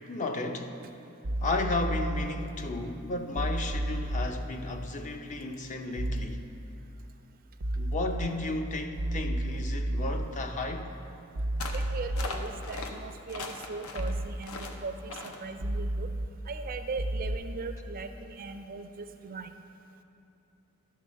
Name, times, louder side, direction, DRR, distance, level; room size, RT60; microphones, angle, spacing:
voice 1, 0.1-0.7 1.4-6.4 7.8-10.9, left 2 dB, 35° left, 5 dB, 0.5 m, -33 dB
sound 1, 1.2-2.3 3.4-4.3 6.0-6.3 7.6-8.3 9.0-10.3 11.4-12.3 14.0-14.3 15.6-16.3 17.0-17.4, right 1 dB, 85° right, 0.6 m, -31 dB
sound 2, 11.6-11.9 12.2-12.9 13.3-14.1 14.4-14.7 15.1-15.4, left 3 dB, 80° left, 0.7 m, -39 dB
voice 2, 11.7-16.1 16.5-19.5, right 4 dB, 40° right, 8 dB, 0.4 m, -39 dB
11.5 x 4.1 x 6.2 m, 2.7 s
head